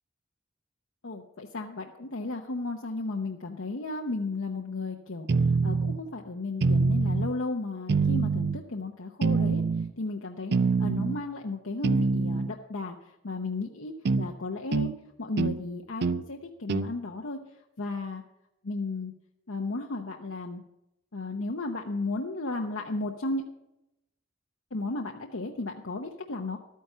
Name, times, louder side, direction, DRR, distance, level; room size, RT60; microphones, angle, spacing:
voice 1, 1.0-5.3 5.6-9.6 10.0-14.9 15.2-17.4 17.8-18.2 18.6-19.1 19.5-20.6 21.1-23.4 24.7-26.6, left 2 dB, 85° left, 2 dB, 0.9 m, -34 dB
sound 1, 5.3-6.0 6.6-7.3 7.9-8.6 9.2-9.9 10.5-11.2 11.8-12.5 14.1-14.3 14.7-14.9 15.4-15.6 16.0-16.2 16.7-16.9, right 4 dB, 60° right, 0.5 m, -25 dB
12.5 x 9.4 x 5.6 m, 0.88 s
head